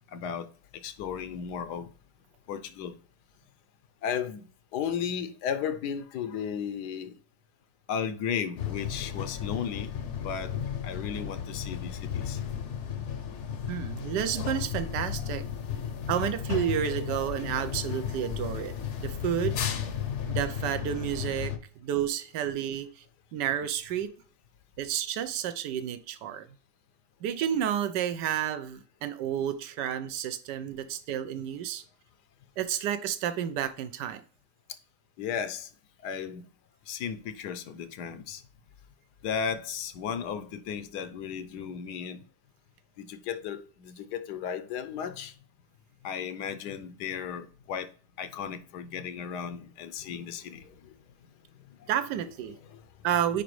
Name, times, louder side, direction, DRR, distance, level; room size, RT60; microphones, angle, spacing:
voice 1, 0.1-1.9 2.5-2.9 4.0-4.4 4.7-7.2 7.9-10.6 10.8-12.4 35.2-35.7 36.0-36.4 36.9-38.4 39.2-42.2 43.0-45.3 46.0-47.9 48.2-51.0 51.7-51.9 52.6-52.9, left 7 dB, 80° left, 1.2 m, -35 dB
sound 1, 8.6-21.6, left 8 dB, 55° left, 0.8 m, -34 dB
voice 2, 13.7-15.4 16.1-19.5 20.3-21.5 21.8-23.0 23.3-24.1 24.8-26.5 27.2-31.8 32.6-34.2 51.9-52.5 53.0-53.4, right 10 dB, 85° right, 1.3 m, -30 dB
8.8 x 5.1 x 3.1 m
omnidirectional pair, 1.8 m